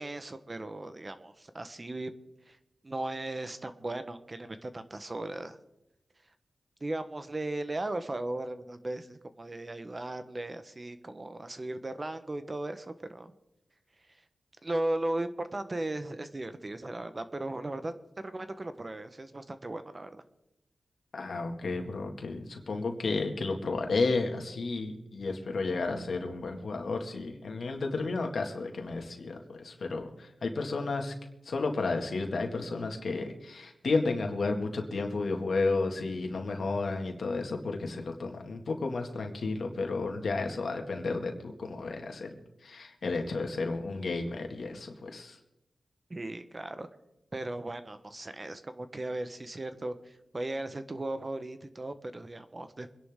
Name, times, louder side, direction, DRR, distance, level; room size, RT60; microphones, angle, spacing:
voice 1, 0.0-2.1 2.5-2.6 2.8-5.6 6.8-13.3 14.6-17.9 18.2-20.2 46.1-46.9 47.3-52.9, right 2 dB, 35° right, 10 dB, 1.1 m, -37 dB
voice 2, 21.1-31.1 31.4-42.3 42.6-45.4, left 3 dB, 75° left, 4 dB, 2.1 m, -32 dB
25.5 x 11.0 x 3.7 m, 0.92 s
cardioid pair, 60°, 0 cm